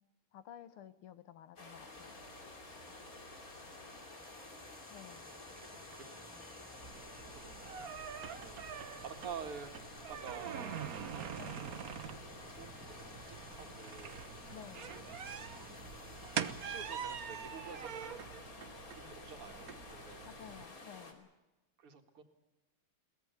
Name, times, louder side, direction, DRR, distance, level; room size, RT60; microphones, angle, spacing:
voice 1, 0.3-2.2 4.9-5.3 11.3-11.6 14.5-14.9 20.3-21.3, left 10 dB, 80° left, 14 dB, 2.0 m, -53 dB
sound 1, 1.6-21.1, left 2 dB, 40° left, 3.1 m, -51 dB
sound 2, 1.9-16.9, right 1 dB, 5° right, 1.4 m, -59 dB
voice 2, 3.2-4.5 5.6-6.2 7.1-7.9 8.2-9.7 10.1-14.4 16.4-18.3 18.9-20.3 21.8-22.2, right 6 dB, 80° right, 6 dB, 2.9 m, -50 dB
sound 3, 6.8-20.6, right 8 dB, 50° right, 1.3 m, -45 dB
22.5 x 18.5 x 8.1 m, 1.1 s
omnidirectional pair, 2.4 m